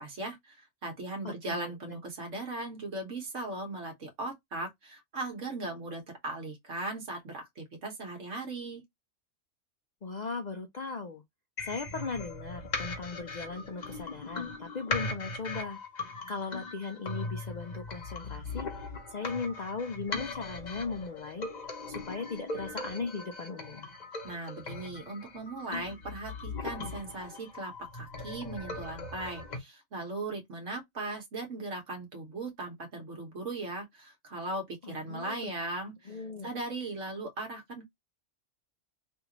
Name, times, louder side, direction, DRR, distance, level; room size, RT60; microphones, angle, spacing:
voice 1, 0.0-8.8 24.2-37.8, right 2 dB, 65° right, 1.6 m, -38 dB
voice 2, 1.2-2.0 10.0-11.2 11.6-23.9 34.8-35.5 36.1-36.5, left 4 dB, 55° left, 0.5 m, -38 dB
sound 1, 11.6-29.6, left 3 dB, 40° left, 0.8 m, -39 dB
3.4 x 2.5 x 2.9 m
omnidirectional pair, 1.3 m